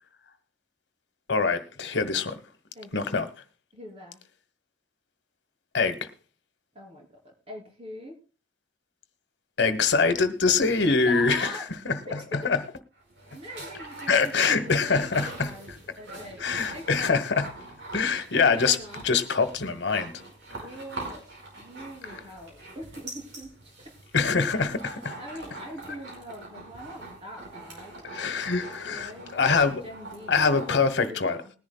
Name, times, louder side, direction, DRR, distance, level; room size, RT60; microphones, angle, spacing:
voice 1, 1.3-2.4 2.9-3.3 5.7-6.0 9.6-11.5 11.8-12.0 12.3-12.6 14.1-15.5 16.4-17.5 17.9-18.8 19.0-20.1 24.1-25.2 28.0-29.8 30.3-31.4, left 4 dB, 70° left, 1.2 m, -24 dB
voice 2, 2.7-3.2 3.7-4.2 6.7-8.2 11.0-11.6 12.1-12.4 13.3-15.1 15.4-16.4 16.7-17.2 18.5-19.0 20.5-21.2 21.6-23.7 24.9-27.9 28.8-31.5, equal, 35° right, 3.1 m, -43 dB
sound 1, 13.0-31.0, right 2 dB, 80° right, 5.1 m, -43 dB
20.5 x 10.5 x 2.3 m
head